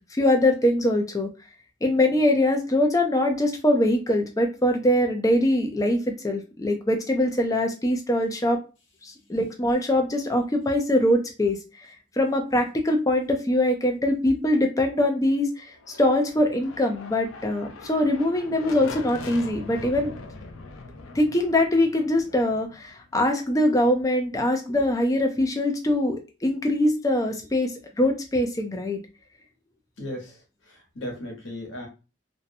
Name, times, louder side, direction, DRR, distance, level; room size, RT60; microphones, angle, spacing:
voice 1, 0.1-1.3 1.8-8.6 9.0-11.6 12.2-20.2 21.1-29.0, left 1 dB, 15° left, 4 dB, 0.4 m, -23 dB
sound 1, 15.7-23.5, left 3 dB, 90° left, 0.5 m, -41 dB
voice 2, 30.0-31.9, left 1 dB, 65° left, 0 dB, 1.0 m, -36 dB
2.6 x 2.1 x 2.6 m, 0.31 s
head